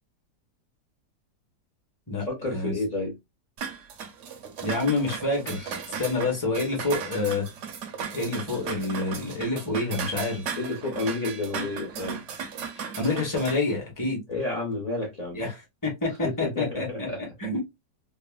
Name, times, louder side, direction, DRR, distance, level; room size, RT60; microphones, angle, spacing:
voice 1, 2.2-3.2 10.6-12.2 14.3-15.4 16.2-17.2, left 2 dB, 55° left, 0.4 m, -30 dB
sound 1, 3.6-13.6, right 6 dB, 70° right, 0.7 m, -36 dB
voice 2, 4.6-5.7 6.0-7.5 8.1-10.4 12.7-14.2 15.3-17.1 17.4-17.6, left 3 dB, 20° left, 0.6 m, -27 dB
3.4 x 2.1 x 2.2 m
omnidirectional pair, 1.8 m